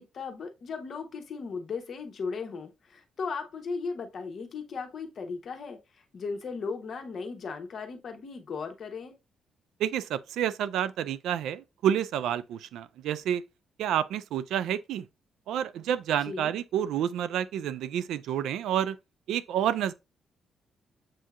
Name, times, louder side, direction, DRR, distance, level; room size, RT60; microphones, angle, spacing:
voice 1, 0.0-9.2 16.3-16.5, left 5 dB, 50° left, 0.9 m, -37 dB
voice 2, 9.8-13.4 13.8-15.1 15.5-19.0 19.3-19.9, right 10 dB, 90° right, 0.3 m, -29 dB
7.4 x 2.7 x 2.3 m
cardioid pair, 120°, 0 cm